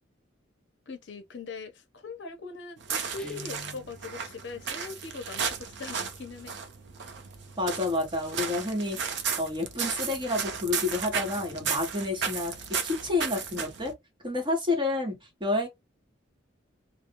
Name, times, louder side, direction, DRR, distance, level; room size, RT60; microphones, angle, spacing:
voice 1, 0.9-6.6, left 4 dB, 65° left, 0.6 m, -41 dB
sound 1, 2.8-13.9, right 6 dB, 60° right, 0.5 m, -34 dB
Guitar, 3.2-4.0, left 2 dB, 5° left, 0.3 m, -44 dB
voice 2, 7.6-9.0 9.4-12.5 12.8-13.9 14.2-15.7, left 2 dB, 25° right, 1.0 m, -29 dB
2.3 x 2.0 x 2.8 m
head